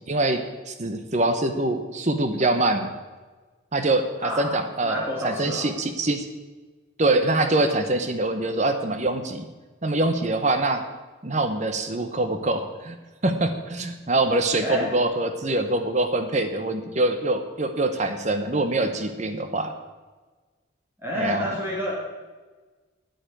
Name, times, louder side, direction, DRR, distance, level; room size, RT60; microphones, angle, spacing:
voice 1, 0.0-2.9 3.7-6.3 7.0-9.5 9.8-10.8 11.2-13.0 13.2-19.7 21.1-21.5, right 2 dB, 35° right, 8 dB, 0.9 m, -24 dB
voice 2, 4.2-5.7 14.6-14.9 21.0-21.9, left 1 dB, 10° right, -4 dB, 2.1 m, -29 dB
9.4 x 9.2 x 9.0 m, 1.3 s
head